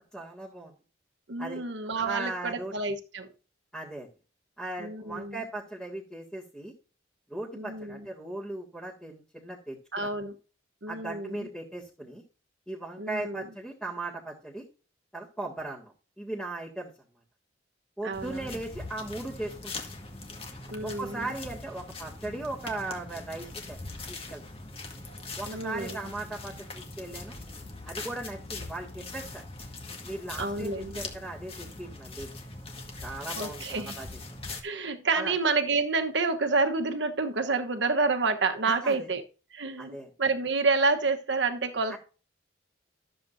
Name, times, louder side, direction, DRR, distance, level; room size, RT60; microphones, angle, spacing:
voice 1, 0.1-0.7 1.4-1.6 2.0-2.7 3.7-4.1 4.6-6.7 7.3-10.1 10.9-12.2 12.7-14.6 15.1-16.9 18.0-19.9 20.8-23.8 24.3-24.4 25.4-27.3 27.8-29.4 30.0-32.4 33.0-34.1 35.2-35.3 38.7-39.1 39.8-40.1 41.9-42.0, right 2 dB, 5° left, 2.1 m, -38 dB
voice 2, 1.3-3.3 4.8-5.4 7.5-8.1 9.9-10.3 10.8-11.5 13.0-13.4 18.0-18.5 20.7-21.3 25.5-26.0 30.4-31.0 33.4-34.0 34.6-39.2 39.5-42.0, right 3 dB, 70° right, 1.2 m, -29 dB
sound 1, 18.1-34.6, left 3 dB, 30° left, 1.7 m, -41 dB
13.5 x 7.6 x 2.7 m
head